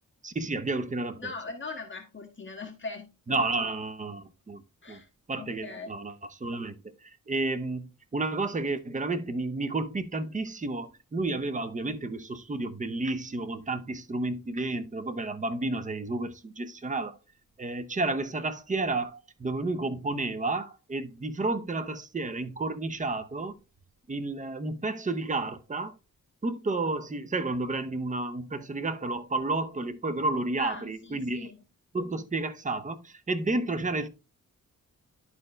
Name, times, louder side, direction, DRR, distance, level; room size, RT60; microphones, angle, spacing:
voice 1, 0.2-1.2 3.3-4.6 4.9-5.0 5.3-17.2 17.6-23.6 24.1-26.0 26.4-31.5 31.9-34.1, right 2 dB, 20° right, 0.7 m, -31 dB
voice 2, 1.2-3.7 4.8-5.1 5.3-5.9 30.6-31.6, left 3 dB, 35° left, 1.5 m, -41 dB
11.0 x 4.4 x 3.3 m
wide cardioid pair, 95°, 34 cm